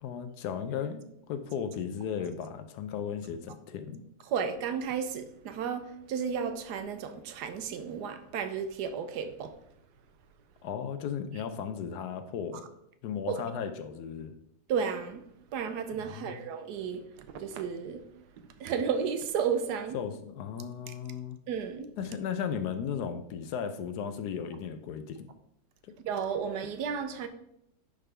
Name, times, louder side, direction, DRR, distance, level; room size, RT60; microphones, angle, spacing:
voice 1, 0.0-4.0 10.6-12.7 13.0-14.3 16.0-16.5 19.9-21.4 22.0-25.3 25.8-25.9, left 7 dB, 75° left, 1.1 m, -36 dB
voice 2, 4.3-9.5 13.3-13.4 14.7-15.2 15.5-17.0 17.3-18.0 18.6-20.0 21.5-21.9 26.0-27.3, right 6 dB, 75° right, 1.2 m, -33 dB
10.0 x 3.6 x 3.3 m
omnidirectional pair, 1.8 m